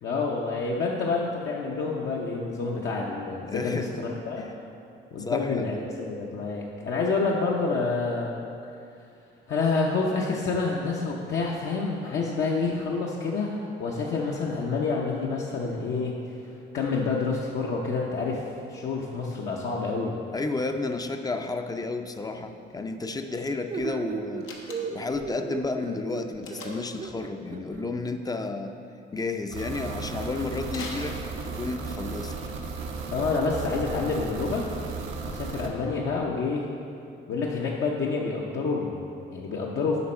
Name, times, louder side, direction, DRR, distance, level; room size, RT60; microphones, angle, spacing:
voice 1, 0.0-4.5 5.1-8.3 9.5-16.1 16.7-18.4 18.7-20.2 33.1-34.6 35.2-36.7 37.3-40.0, left 4 dB, 65° left, -3 dB, 0.7 m, -28 dB
voice 2, 3.5-3.9 4.4-4.5 5.2-5.8 20.3-28.7 29.1-31.2 31.5-32.3, left 3 dB, 20° left, 6 dB, 0.4 m, -32 dB
sound 1, 23.7-27.8, right 5 dB, 40° right, 0.5 m, -36 dB
Slam, 24.4-25.2 26.4-27.0 30.7-31.8, left 3 dB, 90° left, 0.9 m, -41 dB
sound 2, 29.5-35.7, right 4 dB, 85° right, 0.8 m, -35 dB
8.1 x 5.2 x 4.3 m, 2.6 s
cardioid pair, 90°, 20 cm